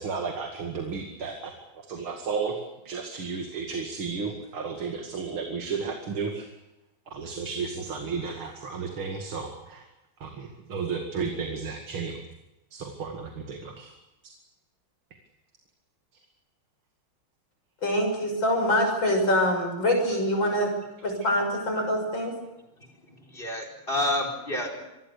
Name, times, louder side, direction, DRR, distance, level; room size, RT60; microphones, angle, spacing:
voice 1, 0.0-6.5 7.1-9.9 10.2-12.2 12.7-13.9, right 5 dB, 85° right, 3 dB, 3.1 m, -33 dB
voice 2, 17.8-20.7 21.0-22.3, left 1 dB, 65° left, 4 dB, 7.1 m, -24 dB
voice 3, 22.8-24.8, left 1 dB, 25° left, 5 dB, 4.7 m, -30 dB
26.0 x 21.5 x 6.9 m, 0.97 s
omnidirectional pair, 2.2 m